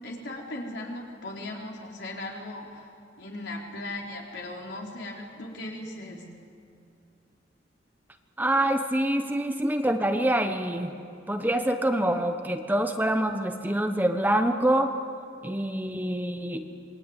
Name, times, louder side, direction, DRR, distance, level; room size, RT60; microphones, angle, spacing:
voice 1, 0.0-2.9 3.2-6.3, left 2 dB, 65° left, -1 dB, 4.5 m, -38 dB
voice 2, 8.4-10.9 11.3-14.9 15.4-16.6, right 1 dB, 10° right, 6 dB, 1.0 m, -25 dB
27.0 x 22.5 x 9.2 m, 2.5 s
head